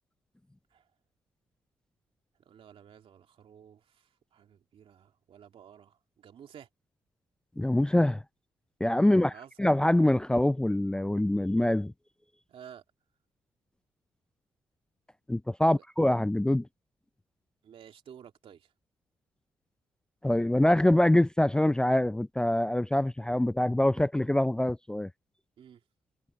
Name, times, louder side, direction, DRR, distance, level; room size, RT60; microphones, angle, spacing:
voice 1, 2.5-6.7 9.0-9.5 12.5-12.8 15.6-15.8 17.6-18.7 25.6-25.8, right 9 dB, 70° right, 2.7 m, -52 dB
voice 2, 7.6-8.2 8.8-9.3 9.6-11.9 15.3-16.7 20.2-25.1, left 1 dB, 10° left, 0.4 m, -24 dB
cardioid pair, 80°, 10 cm